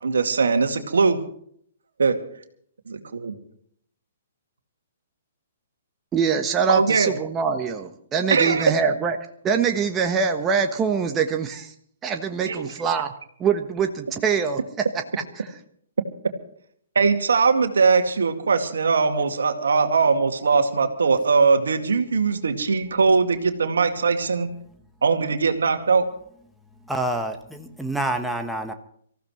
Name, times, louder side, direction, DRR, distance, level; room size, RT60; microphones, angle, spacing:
voice 1, 0.0-1.2 2.0-2.2 2.9-3.3 6.7-7.1 8.3-8.6 12.4-12.7 17.0-24.5 25.0-26.1, right 4 dB, 70° right, 6 dB, 2.2 m, -20 dB
voice 2, 6.1-9.2 9.4-11.7 12.0-13.1 13.4-14.6 15.4-15.5, right 6 dB, 20° right, 5 dB, 1.2 m, -23 dB
voice 3, 26.8-28.7, right 1 dB, ahead, 3 dB, 1.3 m, -27 dB
25.5 x 15.0 x 3.2 m, 0.63 s
figure-of-eight pair, 125°, 0 cm